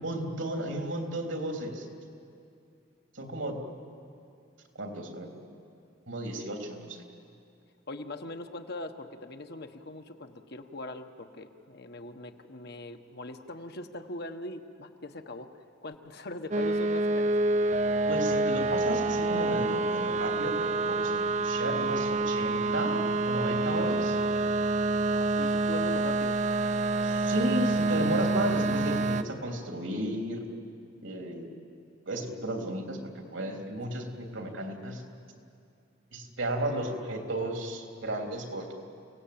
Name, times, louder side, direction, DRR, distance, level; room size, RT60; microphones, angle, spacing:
voice 1, 0.0-1.9 3.1-3.6 4.8-5.3 6.1-7.0 18.1-24.2 27.0-30.4 31.0-31.5 32.1-35.0 36.1-38.7, right 1 dB, 80° right, 3 dB, 3.4 m, -34 dB
voice 2, 7.9-15.5 15.8-17.4 25.1-26.4, left 2 dB, 55° left, 6 dB, 1.2 m, -41 dB
sound 1, 16.5-29.2, right 2 dB, 40° right, 0.7 m, -27 dB
29.5 x 18.0 x 8.6 m, 2.5 s
head